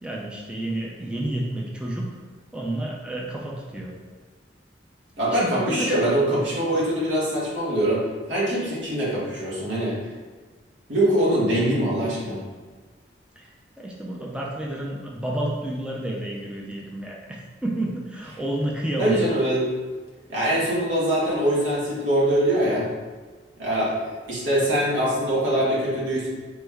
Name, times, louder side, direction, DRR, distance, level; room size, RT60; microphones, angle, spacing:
voice 1, 0.0-2.1 2.5-3.9 5.2-6.0 6.3-6.4 13.4-13.5 13.8-19.3, right 1 dB, 5° right, -3 dB, 0.4 m, -30 dB
voice 2, 5.2-8.0 8.3-9.9 10.9-12.4 19.0-19.6 20.3-22.8 23.6-26.3, right 1 dB, 85° right, -7 dB, 1.3 m, -23 dB
4.2 x 3.2 x 2.3 m, 1.4 s
head